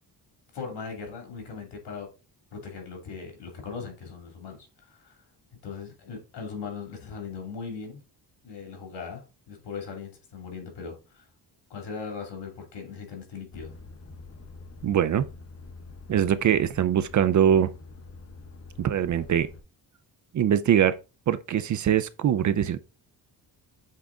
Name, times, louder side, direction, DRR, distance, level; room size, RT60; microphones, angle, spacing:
voice 1, 0.5-2.1 2.5-5.2 5.6-8.0 8.4-11.3 11.7-13.7, left 5 dB, 75° left, 2.6 m, -39 dB
Truck, 13.5-19.6, left 3 dB, 35° left, 0.8 m, -46 dB
voice 2, 14.8-15.3 16.1-17.7 18.8-19.5 20.3-21.0 21.3-22.8, right 9 dB, 45° right, 0.4 m, -22 dB
7.4 x 3.5 x 3.8 m
wide cardioid pair, 160°, 41 cm